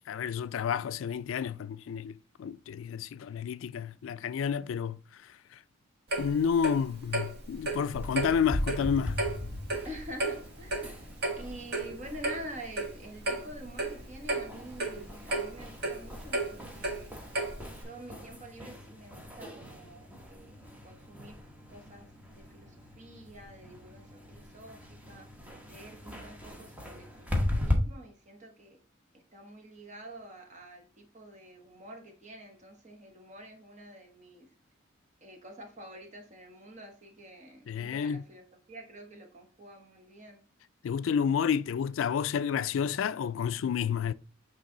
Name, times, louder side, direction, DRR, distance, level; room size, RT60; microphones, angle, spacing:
voice 1, 0.1-5.6 6.2-9.2 37.7-38.2 40.8-44.1, left 7 dB, 75° left, 0.3 m, -30 dB
Clock, 6.1-17.8, right 2 dB, 55° right, 1.7 m, -34 dB
sound 1, 7.9-27.8, left 1 dB, 10° right, 0.9 m, -39 dB
voice 2, 9.8-17.1 17.7-21.4 21.7-25.3 25.7-27.1 27.3-28.8 29.3-34.5 35.2-38.4 38.7-40.4, right 1 dB, 35° right, 1.2 m, -47 dB
8.3 x 3.2 x 3.8 m
head